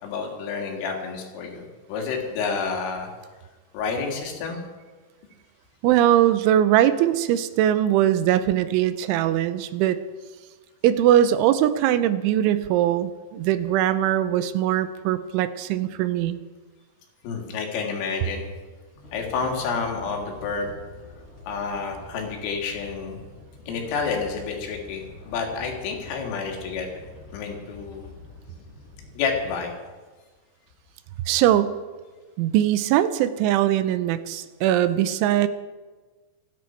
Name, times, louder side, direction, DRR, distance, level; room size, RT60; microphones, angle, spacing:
voice 1, 0.0-3.1 3.7-4.6 17.2-18.5 19.1-20.7 21.5-23.2 23.7-26.9 27.3-28.1 29.1-29.7, left 5 dB, 90° left, 1 dB, 4.9 m, -29 dB
voice 2, 5.8-10.0 10.8-16.4 31.3-31.7 32.4-35.5, right 11 dB, 80° right, 12 dB, 3.0 m, -21 dB
sound 1, 18.9-29.5, left 3 dB, 30° left, 3.9 m, -46 dB
27.0 x 10.5 x 4.5 m, 1.3 s
omnidirectional pair, 5.7 m